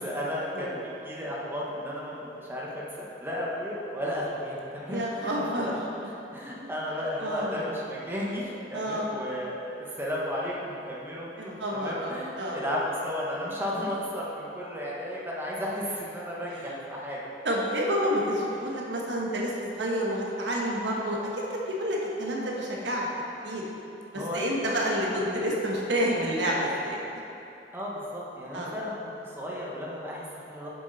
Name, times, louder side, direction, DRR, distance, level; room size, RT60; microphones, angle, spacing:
voice 1, 0.0-5.8 6.3-17.2 24.1-24.8 27.7-30.7, equal, 15° right, -5 dB, 1.2 m, -34 dB
voice 2, 4.9-5.7 7.2-7.5 8.7-9.1 11.4-12.6 17.4-23.1 23.4-23.6 24.1-27.0 28.5-28.7, equal, 90° right, -3 dB, 1.3 m, -29 dB
7.7 x 7.2 x 4.1 m, 2.9 s
head